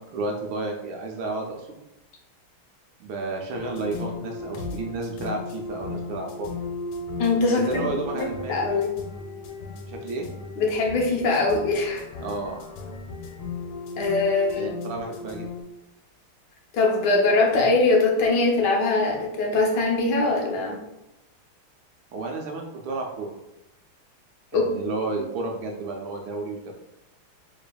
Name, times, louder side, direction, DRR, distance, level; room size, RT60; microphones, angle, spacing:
voice 1, 0.1-1.8 3.0-6.7 7.5-8.9 9.9-10.3 12.2-12.6 14.5-15.5 22.1-23.3 24.5-26.7, right 3 dB, 80° right, 1 dB, 1.3 m, -32 dB
sound 1, 3.5-15.6, left 3 dB, 85° left, 1.5 m, -36 dB
voice 2, 7.2-7.8 8.1-8.9 10.6-12.0 14.0-14.7 16.7-20.8 24.5-24.7, left 3 dB, 65° left, 0 dB, 1.2 m, -22 dB
4.0 x 3.3 x 2.2 m, 0.90 s
omnidirectional pair, 2.3 m